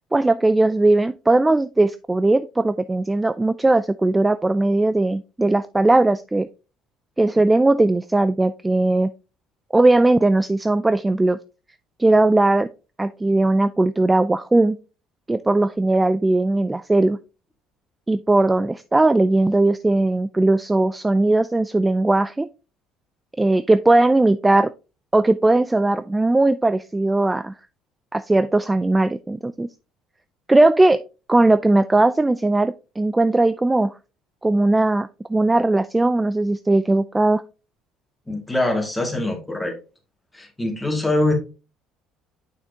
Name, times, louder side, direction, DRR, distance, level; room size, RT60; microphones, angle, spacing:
voice 1, 0.1-6.5 7.2-9.1 9.7-11.4 12.0-12.7 13.0-14.8 15.3-17.2 18.1-22.5 23.4-24.7 25.1-27.5 28.1-29.7 30.5-31.0 31.3-33.9 34.4-37.4, right 2 dB, 15° right, 14 dB, 0.3 m, -18 dB
voice 2, 38.3-39.8 40.3-41.3, left 2 dB, 10° left, 3 dB, 2.2 m, -23 dB
6.6 x 5.7 x 2.8 m, 0.31 s
supercardioid pair, 70°, 0 cm